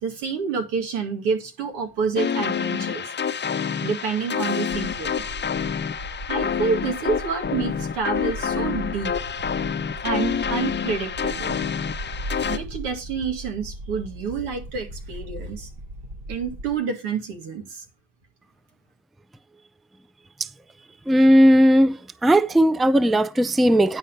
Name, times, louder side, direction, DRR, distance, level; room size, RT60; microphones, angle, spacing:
voice 1, 0.0-3.1 3.8-5.2 6.1-9.1 10.0-11.6 12.5-15.7 16.3-17.8, right 5 dB, 90° right, 2.2 m, -28 dB
sound 1, 2.2-12.6, left 7 dB, 25° left, 0.8 m, -27 dB
sound 2, 4.7-16.7, right 1 dB, 65° right, 1.5 m, -38 dB
voice 2, 21.1-22.0 22.2-24.0, equal, ahead, 0.4 m, -16 dB
10.0 x 4.4 x 6.7 m
supercardioid pair, 80°, 40 cm